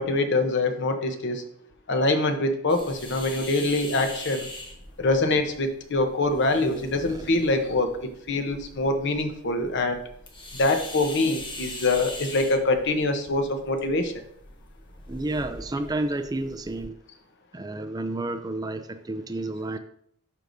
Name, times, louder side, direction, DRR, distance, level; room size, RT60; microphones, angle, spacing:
voice 1, 0.0-1.4 1.9-4.5 5.0-7.9 8.3-10.0 10.6-14.1, left 2 dB, 50° left, 6 dB, 0.9 m, -24 dB
sound 1, 2.7-16.9, left 1 dB, 20° left, 1.1 m, -42 dB
voice 2, 15.1-17.0 17.5-19.8, right 2 dB, 15° right, 7 dB, 0.4 m, -31 dB
11.5 x 4.7 x 2.7 m, 0.68 s
head